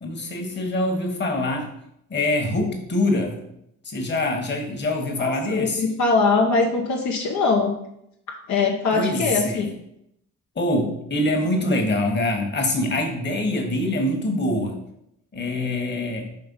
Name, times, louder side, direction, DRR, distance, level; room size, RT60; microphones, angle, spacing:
voice 1, 0.0-1.8 2.1-3.4 3.8-5.8 8.9-9.7 10.5-14.8 15.3-16.3, left 1 dB, 35° left, 2 dB, 1.4 m, -24 dB
voice 2, 5.2-7.7 8.5-9.7, left 4 dB, 70° left, 0 dB, 0.9 m, -22 dB
5.3 x 3.4 x 5.5 m, 0.76 s
cardioid pair, 90°, 30 cm